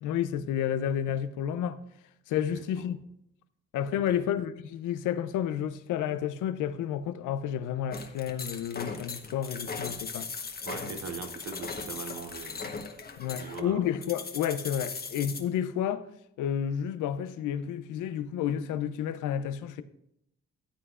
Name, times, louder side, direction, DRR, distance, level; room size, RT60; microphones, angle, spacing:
voice 1, 0.0-1.8 2.3-3.0 3.7-10.3 13.2-16.0 16.4-19.8, left 9 dB, 85° left, 0.6 m, -31 dB
voice 2, 2.5-2.9 4.1-4.2 10.6-12.7 13.1-13.8, right 6 dB, 55° right, 1.1 m, -41 dB
sound 1, 7.9-15.4, left 4 dB, 30° left, 1.1 m, -38 dB
14.0 x 7.9 x 2.4 m
cardioid pair, 90°, 30 cm